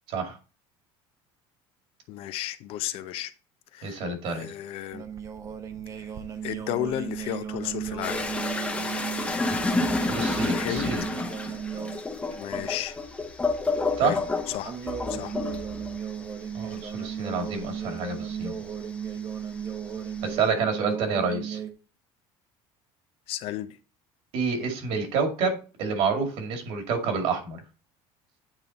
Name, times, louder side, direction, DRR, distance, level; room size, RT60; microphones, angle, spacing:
voice 1, 2.1-3.3 3.7-4.0 4.3-5.0 6.4-8.2 10.4-10.9 12.4-12.9 14.0-14.2 14.5-14.7 15.1-15.4 23.3-23.7, left 12 dB, 55° left, 0.6 m, -33 dB
voice 2, 3.8-4.5 10.1-11.0 14.0-14.2 16.5-18.5 20.2-21.6 24.3-27.6, right 5 dB, 60° right, 2.2 m, -28 dB
sound 1, 4.9-12.0 12.3-12.7 14.6-21.7, right 8 dB, 30° right, 0.7 m, -35 dB
sound 2, 8.0-18.9 19.3-20.4, left 3 dB, 10° left, 0.9 m, -30 dB
8.9 x 3.9 x 4.0 m
cardioid pair, 150°, 11 cm